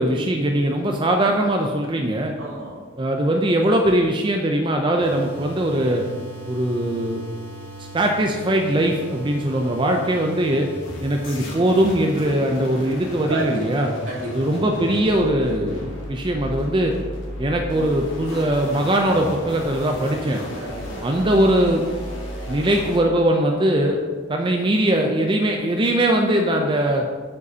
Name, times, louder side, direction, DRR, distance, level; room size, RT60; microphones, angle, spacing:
voice 1, 0.0-2.3 3.0-6.0 6.5-7.2 7.9-10.7 11.0-13.9 14.3-16.9 17.4-20.4 21.0-21.8 22.5-24.0 24.3-27.1, right 1 dB, 25° right, 2 dB, 0.4 m, -21 dB
voice 2, 2.4-2.8 13.3-14.5 20.6-21.1, right 2 dB, 75° right, -5 dB, 2.3 m, -31 dB
sound 1, 5.0-23.0, equal, 65° left, 1.7 m, -35 dB
8.1 x 7.6 x 2.8 m, 1.5 s
head